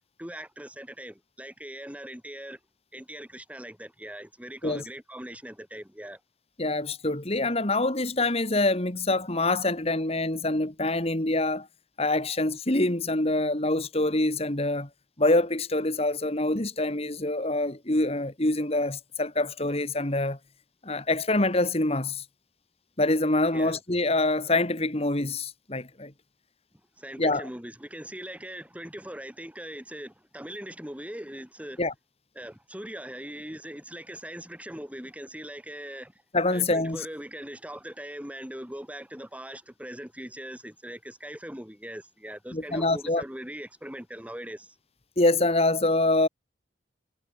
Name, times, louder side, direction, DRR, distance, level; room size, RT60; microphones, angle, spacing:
voice 1, 0.2-2.6 2.9-6.2 23.5-23.8 27.0-31.8 32.4-36.1 36.5-44.7, right 1 dB, 5° right, 2.5 m, -41 dB
voice 2, 6.6-11.7 12.0-14.9 15.2-20.4 20.8-22.2 23.0-26.1 27.2-27.5 31.8-31.9 36.3-37.1 42.5-43.2 45.2-46.3, left 2 dB, 35° left, 2.1 m, -25 dB
head